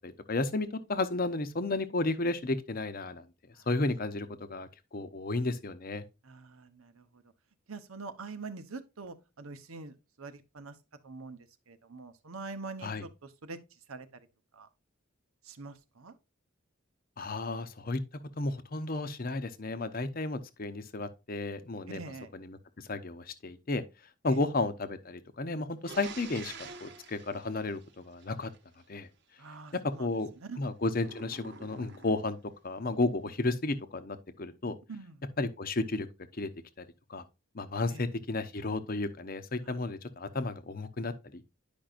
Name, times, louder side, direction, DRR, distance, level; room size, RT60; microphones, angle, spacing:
voice 1, 0.0-3.3 3.7-6.1 12.8-13.0 17.2-18.0 18.4-22.0 22.3-23.8 24.2-28.5 28.9-29.1 30.0-30.3 30.6-32.4 32.6-34.8 35.4-36.1 36.3-36.5 36.8-36.9 37.1-37.2 37.5-41.4, left 2 dB, 45° left, 0.8 m, -33 dB
voice 2, 6.2-7.3 7.7-10.8 11.0-14.1 14.5-14.7 15.4-16.1 21.9-22.3 24.2-24.4 29.4-30.6 34.9-35.3 37.9-38.1 39.6-39.8, right 3 dB, 90° right, 0.9 m, -45 dB
sound 1, 25.8-28.6 31.0-32.4, right 4 dB, 55° right, 1.0 m, -48 dB
10.5 x 5.3 x 2.5 m
head